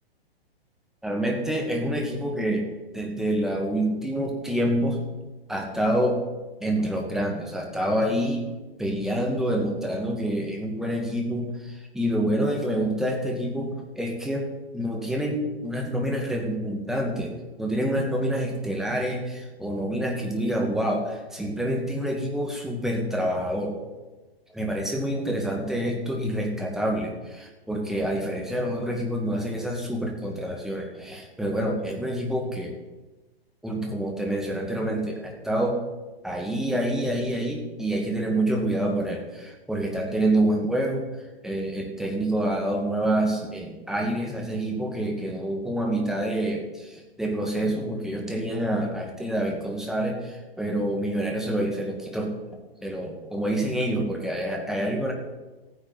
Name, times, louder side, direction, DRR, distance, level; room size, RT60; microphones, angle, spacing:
voice 1, 1.0-2.7 2.9-5.0 5.5-6.2 6.6-8.5 8.8-23.8 24.5-32.8 33.6-35.8 36.2-41.1 41.4-52.3 52.8-55.1, right 1 dB, ahead, 0 dB, 2.3 m, -27 dB
15.0 x 9.8 x 6.2 m, 1.2 s
figure-of-eight pair, 120°, 31 cm